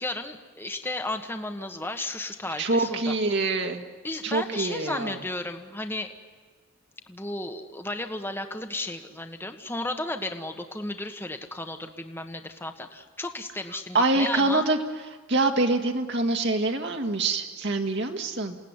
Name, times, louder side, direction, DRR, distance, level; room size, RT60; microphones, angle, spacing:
voice 1, 0.0-3.1 4.0-6.1 7.1-14.6, left 2 dB, 10° left, 6 dB, 1.4 m, -34 dB
voice 2, 2.6-3.8 4.2-5.1 13.9-14.8 15.3-18.6, right 2 dB, 55° right, 4 dB, 2.0 m, -25 dB
29.0 x 18.0 x 9.8 m, 1.5 s
head